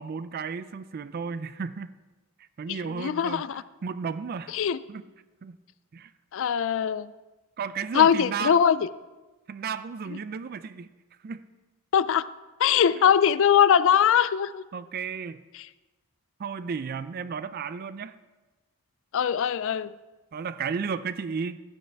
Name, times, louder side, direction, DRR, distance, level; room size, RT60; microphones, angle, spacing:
voice 1, 0.0-1.9 2.6-4.5 4.9-5.1 5.4-5.6 5.9-6.1 7.6-8.6 9.5-10.9 11.2-11.4 13.0-13.1 14.7-15.4 16.4-18.1 20.3-21.6, right 6 dB, 45° right, 14 dB, 0.4 m, -33 dB
voice 2, 2.7-3.6 4.5-4.8 6.3-7.1 7.9-8.9 11.9-12.3 12.6-14.6 19.1-19.9, left 8 dB, 60° left, 17 dB, 0.3 m, -21 dB
12.5 x 9.3 x 3.4 m, 1.2 s
head